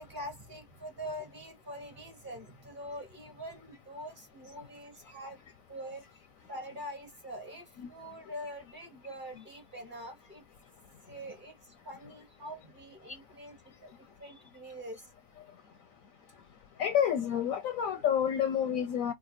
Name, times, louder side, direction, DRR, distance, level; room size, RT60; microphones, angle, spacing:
voice 1, 0.0-5.4 5.7-6.0 6.5-10.4 11.1-15.1, equal, 35° right, 1.0 m, -44 dB
voice 2, 16.8-19.1, left 9 dB, 70° left, 0.8 m, -29 dB
4.8 x 2.2 x 3.0 m
omnidirectional pair, 1.8 m